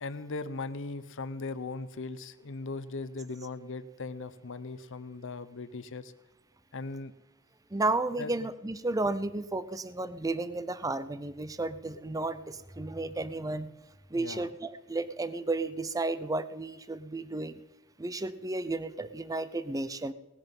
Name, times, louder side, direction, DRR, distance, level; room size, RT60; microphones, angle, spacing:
voice 1, 0.0-6.1 6.7-7.1 8.2-8.3 14.1-14.5, left 3 dB, 60° left, 13 dB, 0.8 m, -38 dB
voice 2, 7.7-13.7 14.1-17.5 18.0-20.1, right 2 dB, 15° right, 15 dB, 0.5 m, -33 dB
18.5 x 11.0 x 5.4 m, 1.0 s
head